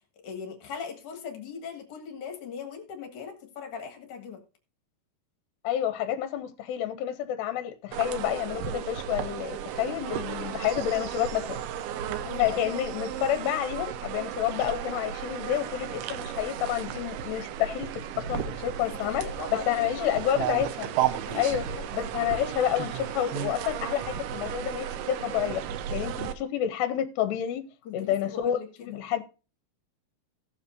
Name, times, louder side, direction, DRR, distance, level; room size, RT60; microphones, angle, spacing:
voice 1, 0.2-4.4 12.2-12.6 18.8-20.3 21.3-21.8 27.8-28.9, left 6 dB, 60° left, 2.5 m, -40 dB
voice 2, 5.6-11.6 12.4-17.9 18.2-20.9 21.3-21.6 21.9-25.7 25.9-27.7 27.9-29.2, left 11 dB, 80° left, 2.7 m, -29 dB
sound 1, 7.9-26.3, right 9 dB, 80° right, 2.4 m, -34 dB
17.5 x 7.1 x 2.6 m
omnidirectional pair, 5.1 m